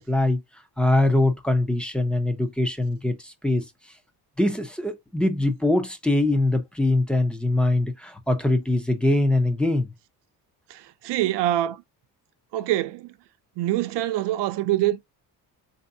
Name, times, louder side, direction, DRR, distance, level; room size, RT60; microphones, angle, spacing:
voice 1, 0.1-0.4 0.8-3.7 4.4-9.9, left 2 dB, ahead, 0.6 m, -22 dB
voice 2, 10.7-11.8 12.5-13.1 13.6-15.0, right 14 dB, 75° right, 0.7 m, -25 dB
4.4 x 2.6 x 2.7 m
cardioid pair, 160°, 42 cm